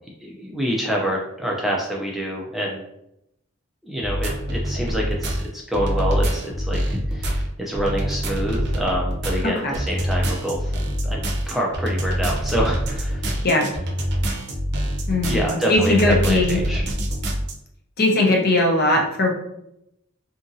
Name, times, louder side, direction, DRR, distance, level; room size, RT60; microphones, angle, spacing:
voice 1, 0.2-2.8 3.9-10.7 11.0-13.4 15.3-16.8, equal, ahead, -3 dB, 0.3 m, -26 dB
sound 1, 4.0-17.5, equal, 55° right, 0.6 m, -25 dB
voice 2, 9.4-9.8 13.4-13.7 15.1-16.6 18.0-19.3, left 2 dB, 50° left, 0 dB, 0.7 m, -19 dB
2.7 x 2.6 x 2.6 m, 0.80 s
head